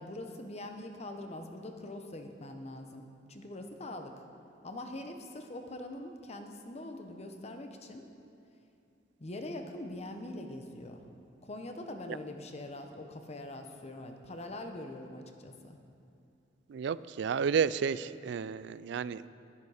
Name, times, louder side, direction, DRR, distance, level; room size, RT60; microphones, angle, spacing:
voice 1, 0.0-4.2 4.6-8.1 9.2-11.0 11.4-15.8, left 1 dB, 35° left, 5 dB, 0.9 m, -43 dB
voice 2, 16.7-19.2, right 6 dB, 70° right, 17 dB, 0.3 m, -31 dB
11.0 x 11.0 x 4.9 m, 2.7 s
head